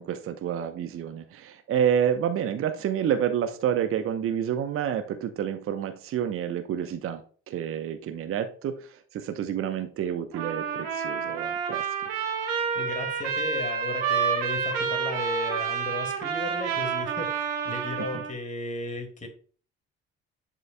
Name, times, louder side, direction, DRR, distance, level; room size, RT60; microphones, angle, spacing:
voice 1, 0.0-7.2 7.5-11.9 18.1-18.2, right 9 dB, 45° right, 8 dB, 0.8 m, -29 dB
Trumpet, 10.3-18.4, right 6 dB, 70° right, 1.4 m, -29 dB
voice 2, 12.7-19.3, left 2 dB, 25° left, 5 dB, 2.1 m, -35 dB
11.0 x 5.0 x 2.2 m, 0.42 s
figure-of-eight pair, 45°, 31 cm